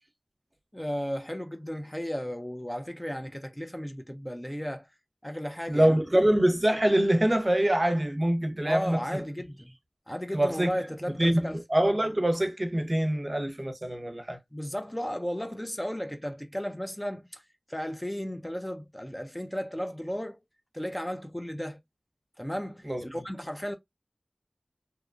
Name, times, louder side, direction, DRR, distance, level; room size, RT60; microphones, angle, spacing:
voice 1, 0.7-4.9 5.2-6.0 8.6-9.7 10.1-11.6 14.5-17.4 17.7-20.4 20.7-21.8 22.4-23.7, equal, 10° left, 0.4 m, -34 dB
voice 2, 5.7-9.2 10.3-10.7 11.2-14.4 22.9-23.0, right 1 dB, 35° right, 0.7 m, -24 dB
2.8 x 2.2 x 2.4 m
wide cardioid pair, 60°, 0 cm